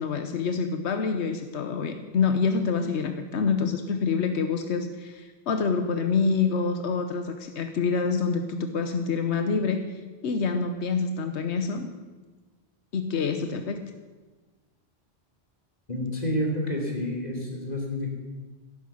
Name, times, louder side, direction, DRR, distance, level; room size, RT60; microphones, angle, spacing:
voice 1, 0.0-11.9 12.9-13.9, left 5 dB, 90° left, 7 dB, 1.2 m, -27 dB
voice 2, 15.9-18.1, left 1 dB, 40° left, 0 dB, 3.3 m, -29 dB
14.5 x 11.5 x 7.1 m, 1.3 s
omnidirectional pair, 1.1 m